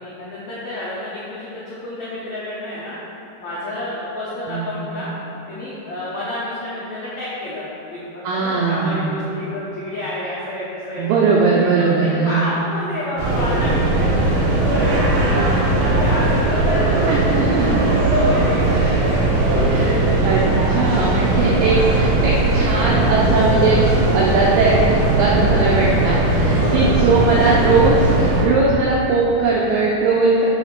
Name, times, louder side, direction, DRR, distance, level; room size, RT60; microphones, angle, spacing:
voice 1, 0.0-2.9 3.4-5.1 5.5-11.1 11.5-17.1 17.6-20.0 26.6-27.1, left 1 dB, 75° left, -9 dB, 1.6 m, -30 dB
voice 2, 4.5-4.8 8.2-9.1 11.0-12.5 17.1-18.0 19.6-23.8 24.1-30.5, right 3 dB, 85° right, -4 dB, 2.0 m, -19 dB
sound 1, 13.2-28.4, right 2 dB, 65° right, 1.9 m, -18 dB
7.2 x 5.3 x 5.8 m, 3.0 s
omnidirectional pair, 4.8 m